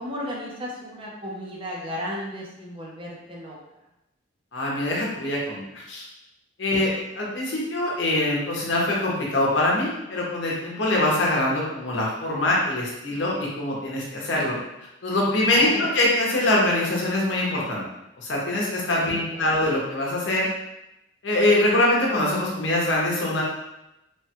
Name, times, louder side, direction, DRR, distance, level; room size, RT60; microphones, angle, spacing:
voice 1, 0.0-3.6 15.5-15.9 19.1-19.6, equal, 30° right, -3 dB, 0.6 m, -35 dB
voice 2, 4.5-6.0 6.6-6.9 7.2-14.6 15.0-17.8 18.2-20.5 21.2-23.4, left 1 dB, 75° left, -3 dB, 0.8 m, -23 dB
3.1 x 2.2 x 2.9 m, 0.90 s
head